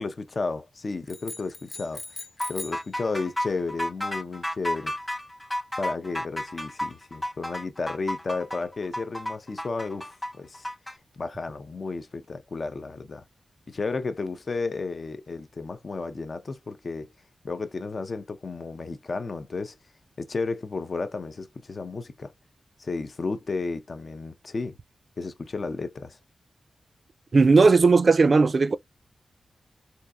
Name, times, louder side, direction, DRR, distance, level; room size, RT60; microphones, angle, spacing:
voice 1, 0.0-2.0 2.5-4.9 5.8-10.7 11.2-13.2 13.7-17.1 17.4-19.8 20.2-22.3 22.8-24.8 25.2-26.2, left 3 dB, 55° left, 0.5 m, -33 dB
sound 1, 1.1-2.9, left 2 dB, 40° left, 0.8 m, -40 dB
sound 2, 2.4-11.0, left 1 dB, 15° left, 0.9 m, -32 dB
voice 2, 27.3-28.8, right 4 dB, 55° right, 0.3 m, -17 dB
3.6 x 2.7 x 2.3 m
cardioid pair, 50°, 0 cm